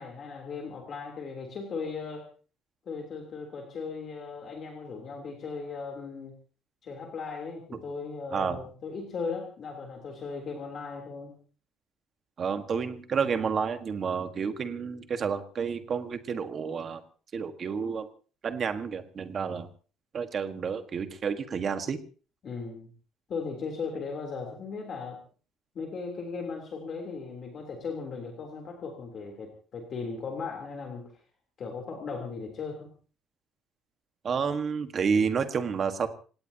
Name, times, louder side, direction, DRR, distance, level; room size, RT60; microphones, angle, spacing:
voice 1, 0.0-2.2 2.9-6.4 6.8-11.4 22.4-22.9 23.3-25.2 25.8-31.1 31.6-32.9, left 4 dB, 35° left, 2 dB, 3.4 m, -37 dB
voice 2, 12.4-17.0 17.3-18.1 18.4-19.7 20.1-22.0 34.2-36.1, right 6 dB, 30° right, 8 dB, 1.6 m, -30 dB
28.0 x 17.5 x 2.9 m, 0.39 s
cardioid pair, 180°, 0 cm